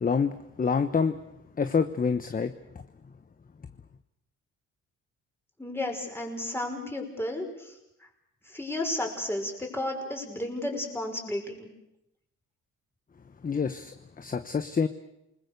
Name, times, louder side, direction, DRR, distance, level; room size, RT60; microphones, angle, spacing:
voice 1, 0.0-0.3 0.6-1.1 1.6-2.5 13.4-14.9, left 5 dB, 30° left, 10 dB, 1.1 m, -26 dB
voice 2, 5.6-7.7 8.5-11.7, left 1 dB, 10° left, 2 dB, 5.7 m, -33 dB
28.5 x 20.5 x 6.8 m, 0.85 s
cardioid pair, 90°, 30 cm